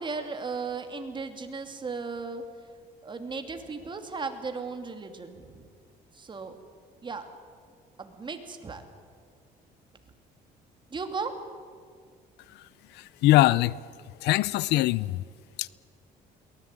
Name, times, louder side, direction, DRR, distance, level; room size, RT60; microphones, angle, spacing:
voice 1, 0.0-2.4 3.0-5.7 6.1-6.5 7.0-7.3 8.0-8.8 10.9-11.3, right 4 dB, 30° right, 2.7 m, -36 dB
voice 2, 12.9-13.8 14.2-15.2 15.6-15.7, left 16 dB, 85° left, 0.6 m, -22 dB
23.0 x 18.5 x 9.0 m
cardioid pair, 110°, 17 cm